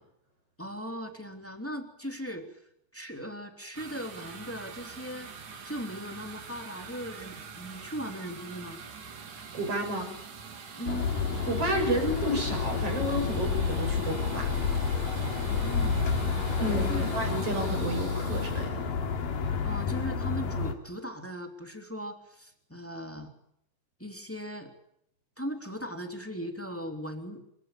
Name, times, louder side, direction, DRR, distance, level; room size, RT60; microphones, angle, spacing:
voice 1, 0.6-2.6 2.9-5.3 5.6-8.8 10.8-11.1 15.5-16.2 16.7-17.2 19.6-23.3 24.0-24.7 25.4-27.4, equal, 5° left, 4 dB, 2.5 m, -38 dB
sound 1, 3.7-19.5, right 5 dB, 60° right, 4.3 m, -44 dB
voice 2, 9.5-10.2 11.5-14.5 15.0-15.2 16.6-18.9, right 1 dB, 40° right, 5 dB, 7.3 m, -31 dB
sound 2, 10.9-20.7, left 5 dB, 75° left, 4.2 m, -30 dB
27.0 x 16.5 x 8.8 m, 0.75 s
omnidirectional pair, 3.9 m